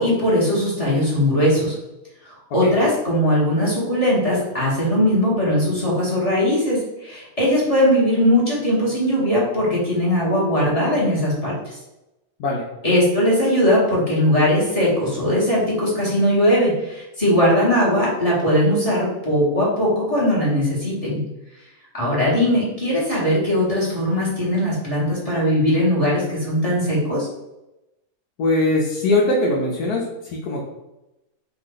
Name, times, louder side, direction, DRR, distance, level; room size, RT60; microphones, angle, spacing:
voice 1, 0.0-1.7 2.3-11.8 12.8-21.2 21.9-27.3, equal, 25° left, -6 dB, 1.3 m, -19 dB
voice 2, 28.4-30.6, left 2 dB, 70° left, -4 dB, 1.2 m, -21 dB
4.6 x 2.6 x 3.9 m, 0.96 s
omnidirectional pair, 1.8 m